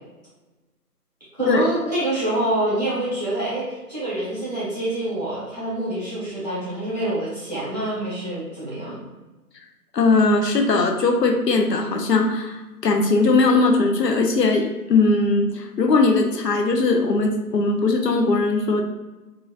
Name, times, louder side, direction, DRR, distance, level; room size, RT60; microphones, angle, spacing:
voice 1, 1.3-9.0, right 1 dB, 25° right, -11 dB, 1.2 m, -26 dB
voice 2, 9.9-18.8, left 3 dB, 85° left, 3 dB, 0.7 m, -19 dB
3.8 x 2.8 x 2.3 m, 1.1 s
figure-of-eight pair, 175°, 48 cm